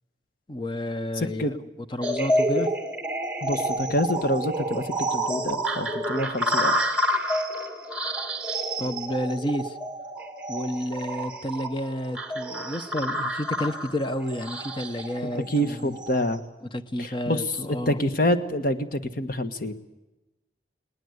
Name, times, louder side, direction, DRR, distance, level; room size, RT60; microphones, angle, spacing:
voice 1, 0.5-1.6 1.9-2.7 8.8-9.8 10.5-16.0 16.7-18.0, equal, 25° left, 11 dB, 0.9 m, -30 dB
voice 2, 1.2-1.5 3.4-6.7 15.3-16.4 17.0-19.7, equal, 50° left, 10 dB, 1.4 m, -27 dB
sound 1, 2.0-16.3, right 1 dB, 5° right, 2.1 m, -29 dB
20.5 x 18.5 x 8.0 m, 1.0 s
head